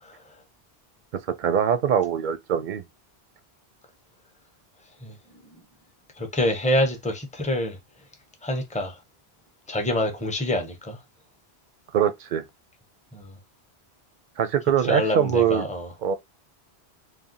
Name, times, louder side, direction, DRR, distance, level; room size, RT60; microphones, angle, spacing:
voice 1, 1.4-2.8 11.9-12.4 14.4-15.7 16.0-16.1, right 8 dB, 60° right, 0.5 m, -22 dB
voice 2, 6.2-7.8 8.4-9.0 9.7-11.0 13.1-13.4 14.8-15.9, left 1 dB, 10° left, 0.5 m, -26 dB
3.3 x 2.3 x 2.5 m
omnidirectional pair, 1.1 m